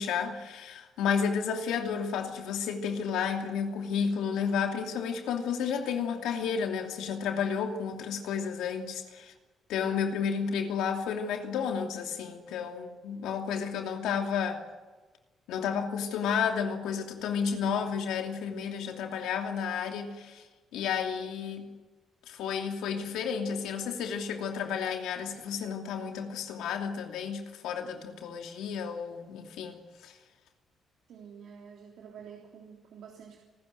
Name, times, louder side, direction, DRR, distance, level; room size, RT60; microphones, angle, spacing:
voice 1, 0.0-9.3 9.7-14.6 15.5-20.4 20.7-21.7 22.3-29.8 30.0-30.1, left 7 dB, 90° left, 2.8 m, -32 dB
voice 2, 31.1-33.4, right 7 dB, 75° right, 3.2 m, -48 dB
26.5 x 14.0 x 9.5 m
cardioid pair, 90°, 0 cm